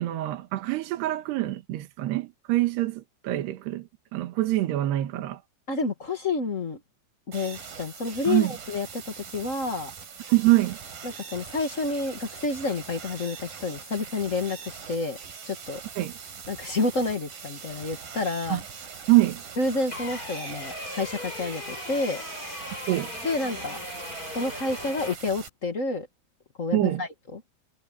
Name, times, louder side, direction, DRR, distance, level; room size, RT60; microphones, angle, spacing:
voice 1, 0.0-5.4 8.3-8.6 10.3-10.8 16.0-16.2 18.5-18.6 19.1-19.4 22.9-23.1 26.7-27.0, right 17 dB, 75° right, 3.5 m, -25 dB
voice 2, 5.7-6.8 7.3-9.9 11.0-15.2 15.4-15.8 16.5-18.6 19.6-22.2 23.2-23.8 24.3-26.1 26.6-27.4, left 3 dB, 65° left, 0.7 m, -29 dB
sound 1, 7.3-25.5, right 6 dB, 55° right, 5.6 m, -42 dB
sound 2, 19.9-25.1, left 2 dB, 20° left, 6.5 m, -38 dB
omnidirectional pair, 4.9 m